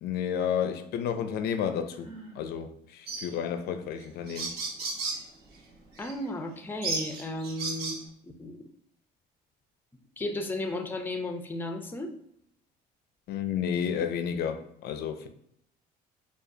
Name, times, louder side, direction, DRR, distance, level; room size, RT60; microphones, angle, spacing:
voice 1, 0.0-2.1 2.4-4.6 13.3-15.3, left 8 dB, 70° left, 0.4 m, -31 dB
Sigh, 1.9-2.5, right 3 dB, 45° right, 1.4 m, -47 dB
sound 1, 3.1-3.3 4.0-4.1 4.3-5.2 6.0-6.1 6.8-8.0, right 3 dB, 70° right, 0.9 m, -34 dB
voice 2, 6.0-8.0 8.2-8.6 10.2-12.1, left 2 dB, 10° left, 0.5 m, -34 dB
4.8 x 2.4 x 2.6 m
cardioid pair, 110°, 17 cm